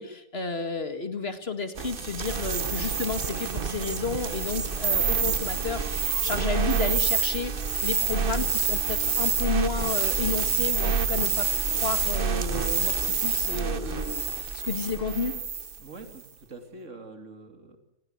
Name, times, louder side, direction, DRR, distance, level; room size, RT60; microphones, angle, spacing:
voice 1, 0.0-15.4, left 4 dB, 50° left, 9 dB, 2.3 m, -32 dB
sound 1, 1.8-15.8, right 5 dB, 45° right, 1.2 m, -27 dB
voice 2, 15.8-17.8, right 3 dB, 70° right, 6 dB, 3.2 m, -45 dB
29.0 x 20.5 x 8.1 m, 0.87 s
omnidirectional pair, 1.3 m